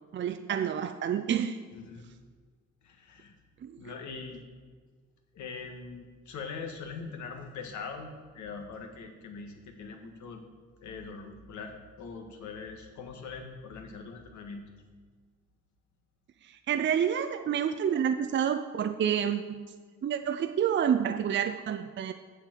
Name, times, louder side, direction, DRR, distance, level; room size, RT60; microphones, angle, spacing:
voice 1, 0.1-1.6 3.6-3.9 16.4-19.7 20.0-22.1, right 8 dB, 40° right, 8 dB, 0.5 m, -29 dB
voice 2, 1.7-2.0 2.8-3.3 3.8-4.4 5.3-10.4 10.8-14.6, left 5 dB, 75° left, 3 dB, 1.6 m, -42 dB
7.2 x 7.0 x 7.5 m, 1.5 s
cardioid pair, 90°, 30 cm